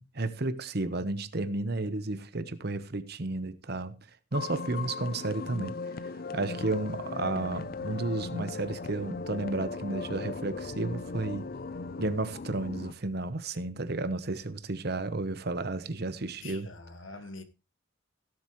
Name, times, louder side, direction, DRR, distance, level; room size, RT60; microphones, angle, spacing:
voice 1, 0.0-4.0 4.3-5.8 6.3-11.4 12.0-16.7, right 2 dB, 55° right, 1.0 m, -32 dB
sound 1, 4.3-12.9, left 4 dB, 50° left, 0.5 m, -38 dB
voice 2, 4.8-5.2 16.4-17.4, left 3 dB, 85° left, 1.3 m, -45 dB
16.5 x 7.6 x 3.1 m
head